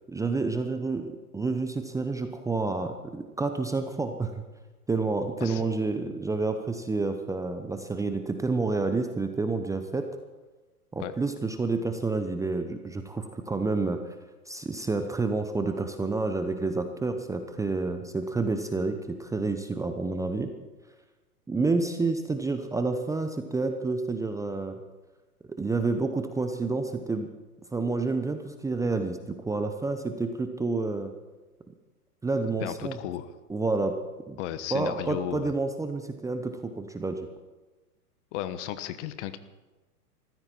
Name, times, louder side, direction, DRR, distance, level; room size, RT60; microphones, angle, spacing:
voice 1, 0.1-4.4 4.9-10.1 10.9-14.1 14.5-20.5 21.5-24.8 25.5-27.3 27.7-31.1 32.2-33.0 33.5-34.0 34.3-34.4 34.7-37.3, right 3 dB, 5° right, 7 dB, 0.8 m, -29 dB
voice 2, 32.6-33.3 34.4-35.5 38.3-39.4, left 12 dB, 50° left, 12 dB, 1.3 m, -34 dB
21.5 x 15.0 x 4.5 m, 1.2 s
hypercardioid pair, 115°, 47 cm